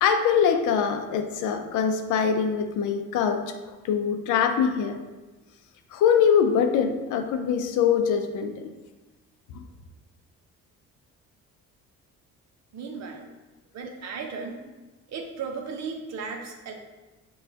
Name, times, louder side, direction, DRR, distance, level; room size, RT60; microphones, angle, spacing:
voice 1, 0.0-3.4 3.8-5.0 5.9-8.5, left 7 dB, 80° left, 6 dB, 0.5 m, -23 dB
voice 2, 12.7-13.3 13.7-14.6 15.1-16.7, right 5 dB, 60° right, 3 dB, 0.7 m, -35 dB
6.1 x 2.3 x 2.8 m, 1.2 s
cardioid pair, 90°, 30 cm